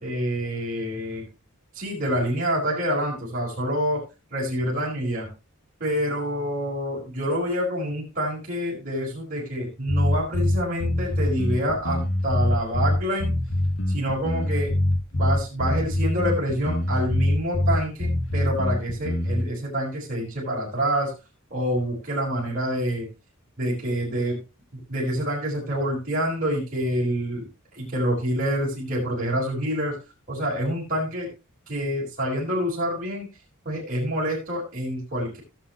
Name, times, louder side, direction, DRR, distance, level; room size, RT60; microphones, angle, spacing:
voice 1, 0.0-1.2 1.7-4.0 4.3-5.3 5.8-13.3 13.9-14.7 15.1-21.1 21.5-23.1 23.6-24.4 24.9-27.5 27.7-30.0 30.3-31.3 31.7-33.3 33.6-35.4, equal, 40° right, -5 dB, 4.9 m, -27 dB
sound 1, 9.9-19.5, left 1 dB, 60° left, 2.1 m, -24 dB
17.5 x 7.5 x 3.0 m, 0.28 s
head